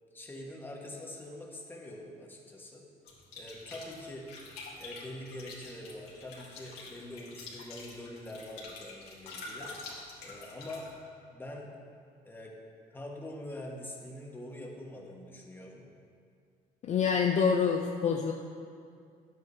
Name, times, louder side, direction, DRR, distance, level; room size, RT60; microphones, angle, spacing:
voice 1, 0.1-2.8 3.3-4.3 4.8-9.7 10.2-10.9 11.3-11.7 12.2-12.5 12.9-15.8, left 1 dB, 10° left, -1 dB, 1.3 m, -44 dB
sound 1, 3.1-10.9, left 3 dB, 70° left, 2.1 m, -47 dB
voice 2, 16.8-18.3, left 6 dB, 45° left, 3 dB, 0.5 m, -26 dB
11.0 x 8.4 x 2.7 m, 2.3 s
cardioid pair, 110°, 17 cm